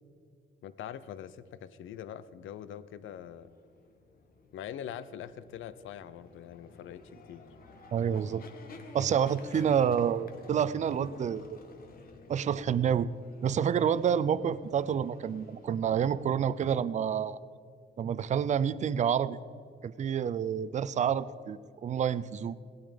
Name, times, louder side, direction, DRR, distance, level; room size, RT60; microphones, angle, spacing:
voice 1, 0.6-3.5 4.5-7.4, left 10 dB, 90° left, 15 dB, 0.7 m, -43 dB
sound 1, 3.1-16.7, left 4 dB, 50° left, 1.4 m, -52 dB
voice 2, 7.9-8.4 8.9-11.6 12.3-13.1 13.4-17.4 18.0-19.4 19.8-22.6, right 8 dB, 35° right, 16 dB, 0.5 m, -28 dB
18.0 x 12.5 x 5.2 m, 2.2 s
cardioid pair, 175°, 20 cm